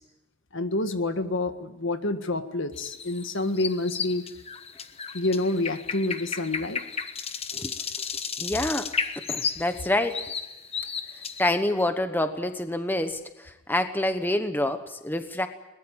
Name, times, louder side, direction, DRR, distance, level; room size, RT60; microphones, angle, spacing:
voice 1, 0.5-4.2 5.1-6.8, left 2 dB, 60° left, 9 dB, 1.7 m, -28 dB
sound 1, 2.8-11.6, left 6 dB, 30° left, 1.2 m, -33 dB
voice 2, 8.0-8.9 9.3-10.2 11.4-15.5, left 1 dB, 10° left, 8 dB, 1.0 m, -27 dB
22.0 x 20.5 x 8.9 m, 0.98 s
head